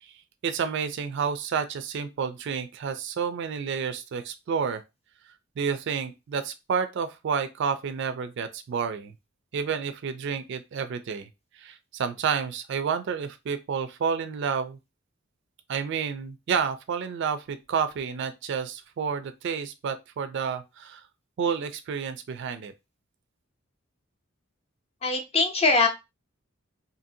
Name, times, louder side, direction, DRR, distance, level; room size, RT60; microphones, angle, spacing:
voice 1, 0.4-4.8 5.6-9.1 9.5-11.3 11.5-14.8 15.7-21.0 21.4-22.7, right 6 dB, 60° right, 0.3 m, -30 dB
voice 2, 25.0-25.9, left 3 dB, 30° left, 0.6 m, -22 dB
2.7 x 2.6 x 2.6 m
head